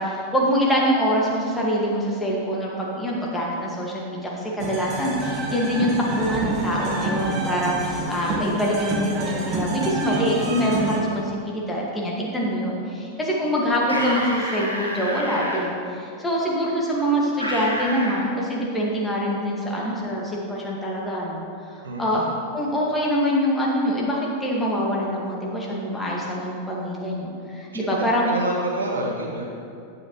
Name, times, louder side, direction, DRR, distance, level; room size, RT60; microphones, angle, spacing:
voice 1, 0.0-21.4 22.0-22.2 22.5-28.3, equal, 10° left, -4 dB, 1.8 m, -24 dB
sound 1, 4.6-11.0, right 2 dB, 35° right, 1.4 m, -28 dB
sound 2, 13.8-15.6 17.4-18.2, equal, 85° right, 1.3 m, -29 dB
voice 2, 21.8-22.3 27.7-29.4, right 2 dB, 70° right, -1 dB, 1.5 m, -28 dB
10.5 x 8.5 x 3.1 m, 2.4 s
figure-of-eight pair, 90°, 0 cm